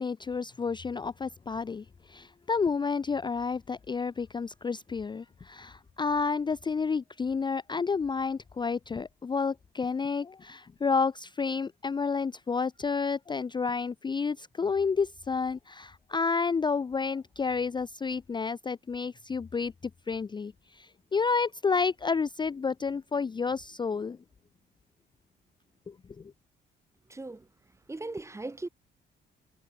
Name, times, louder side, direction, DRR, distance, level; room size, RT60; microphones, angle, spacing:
voice 1, 0.0-19.7 20.1-24.2 25.9-26.3, left 5 dB, 25° left, 0.4 m, -30 dB
voice 2, 27.1-27.5 27.9-28.7, right 2 dB, 15° right, 0.9 m, -38 dB
cardioid pair, 90°, 20 cm